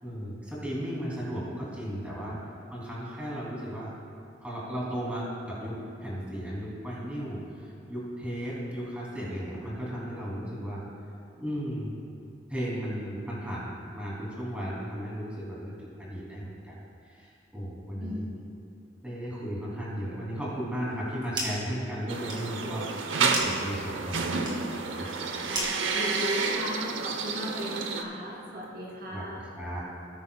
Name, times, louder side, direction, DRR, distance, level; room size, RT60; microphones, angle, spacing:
voice 1, 0.0-2.4 2.7-3.9 4.4-10.8 11.4-11.9 12.5-16.8 17.0-18.3 19.0-24.6 24.9-25.4 29.1-29.8, equal, 5° right, -7 dB, 2.6 m, -35 dB
voice 2, 18.0-18.3 25.5-29.4, equal, 55° right, -5 dB, 2.4 m, -37 dB
sound 1, 20.9-21.7 22.0-26.9, right 1 dB, 25° right, 2.3 m, -38 dB
sound 2, 22.1-28.0, right 4 dB, 90° right, 0.7 m, -30 dB
18.0 x 9.7 x 2.2 m, 2.4 s
head